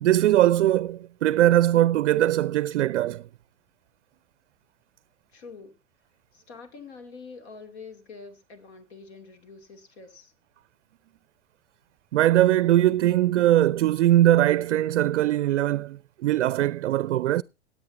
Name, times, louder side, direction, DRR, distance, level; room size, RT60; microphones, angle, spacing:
voice 1, 0.0-3.3 12.1-17.4, right 13 dB, 70° right, 0.5 m, -21 dB
voice 2, 5.3-5.7 6.3-10.3, left 4 dB, 60° left, 2.9 m, -45 dB
18.0 x 8.8 x 2.8 m
hypercardioid pair, 100°, 36 cm